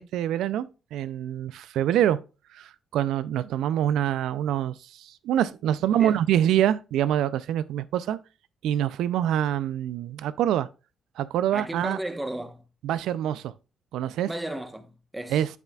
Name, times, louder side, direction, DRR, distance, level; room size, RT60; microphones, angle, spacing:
voice 1, 0.0-2.2 2.5-8.2 8.6-10.7 11.2-12.0 12.8-13.5 13.9-14.3 15.3-15.5, right 11 dB, 85° right, 0.4 m, -25 dB
voice 2, 5.9-6.2 11.5-12.6 14.3-15.5, right 1 dB, 10° right, 1.0 m, -34 dB
8.2 x 7.0 x 2.3 m
cardioid pair, 90°, 0 cm